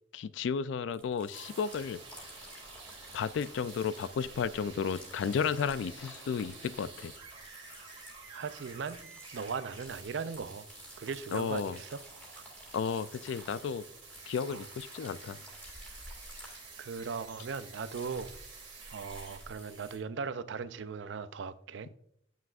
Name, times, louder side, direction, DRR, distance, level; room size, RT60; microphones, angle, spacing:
voice 1, 0.1-2.0 3.1-7.1 11.3-11.8 12.7-13.8 14.3-15.4, left 6 dB, 70° left, 0.3 m, -33 dB
sound 1, 0.9-19.9, left 1 dB, 10° left, 1.9 m, -53 dB
sound 2, 1.3-20.0, right 4 dB, 35° right, 1.8 m, -50 dB
voice 2, 8.3-10.7 11.0-12.0 14.5-14.6 16.4-18.3 18.9-21.9, right 5 dB, 65° right, 0.4 m, -39 dB
9.1 x 6.1 x 2.4 m
head